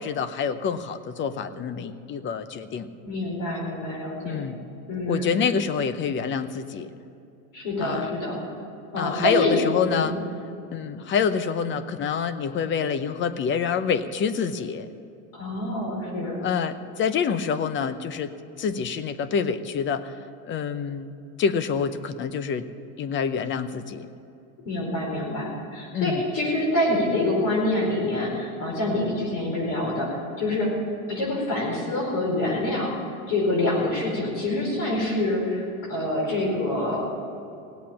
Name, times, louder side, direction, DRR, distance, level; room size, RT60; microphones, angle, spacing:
voice 1, 0.0-2.9 4.2-4.6 5.1-6.9 7.8-8.1 9.0-10.2 10.7-14.9 16.4-20.2 20.5-21.1 21.4-22.7 23.0-24.1 25.9-26.2, left 6 dB, 30° left, 13 dB, 0.7 m, -27 dB
voice 2, 3.0-4.5 4.9-5.3 7.5-8.4 8.9-9.5 9.9-10.2 15.3-16.4 24.6-30.1 30.4-30.7 31.1-32.9 33.3-35.6 35.9-37.1, left 1 dB, 50° left, -2 dB, 4.7 m, -26 dB
17.5 x 8.2 x 8.7 m, 2.7 s
supercardioid pair, 140°, 42 cm